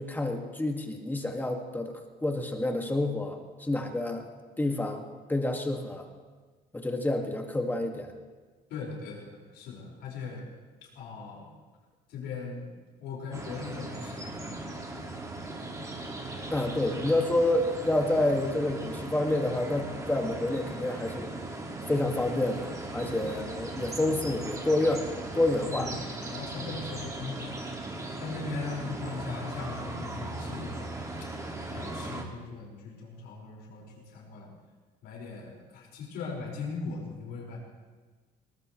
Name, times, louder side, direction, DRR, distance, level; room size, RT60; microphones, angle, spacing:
voice 1, 0.0-4.3 4.6-6.1 6.7-8.1 16.5-21.3 21.9-25.9, left 1 dB, 10° left, 2 dB, 2.0 m, -28 dB
voice 2, 8.7-10.4 10.8-11.5 12.1-12.7 13.0-14.9 16.3-16.5 16.9-17.0 23.0-23.4 25.7-27.5 28.2-30.9 31.2-34.5 35.0-37.6, left 4 dB, 85° left, -3 dB, 5.3 m, -39 dB
sound 1, 13.3-32.2, right 2 dB, 20° right, 2.1 m, -38 dB
20.0 x 20.0 x 3.2 m, 1.4 s
cardioid pair, 110°, 17 cm